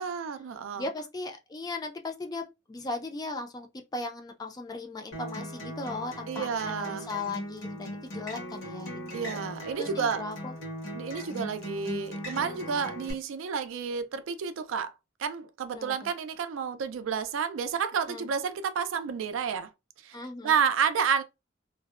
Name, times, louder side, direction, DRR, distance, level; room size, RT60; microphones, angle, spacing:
voice 1, 0.0-0.9 6.3-7.1 9.1-10.2 10.9-14.9 15.2-19.7 20.0-20.2 20.4-21.2, right 6 dB, 80° right, 0.4 m, -30 dB
voice 2, 0.8-3.7 3.9-9.0 9.3-9.4 9.8-10.5 15.7-16.1 18.1-18.3 20.1-20.6, left 3 dB, 20° left, 0.4 m, -37 dB
Acoustic guitar, 5.1-13.1, equal, 75° left, 1.1 m, -39 dB
2.5 x 2.0 x 2.4 m
head